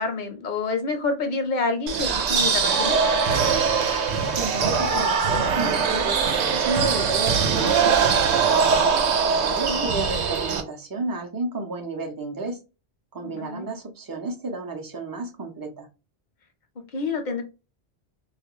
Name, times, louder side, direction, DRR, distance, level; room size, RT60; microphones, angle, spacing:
voice 1, 0.0-3.0 9.5-9.9 13.2-13.7 16.9-17.4, left 3 dB, 50° left, 0.7 m, -28 dB
sound 1, 1.9-10.6, right 5 dB, 80° right, 0.9 m, -22 dB
voice 2, 4.3-6.2 6.5-8.7 9.2-12.6 13.1-15.9, right 3 dB, 30° right, 0.4 m, -32 dB
2.4 x 2.2 x 3.0 m
omnidirectional pair, 1.1 m